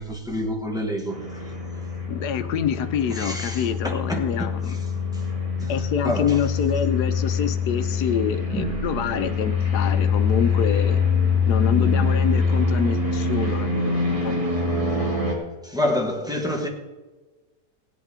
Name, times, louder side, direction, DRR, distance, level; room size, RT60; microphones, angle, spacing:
voice 1, 0.0-1.5 3.1-4.8 5.1-5.2 5.6-6.4 8.5-8.9 15.6-16.7, left 1 dB, 5° right, 1.0 m, -28 dB
sound 1, 1.1-15.3, left 4 dB, 20° right, 2.0 m, -24 dB
voice 2, 2.1-4.8 5.7-11.0 11.5-14.4, left 7 dB, 70° left, 1.2 m, -26 dB
18.0 x 8.1 x 3.7 m
omnidirectional pair, 1.9 m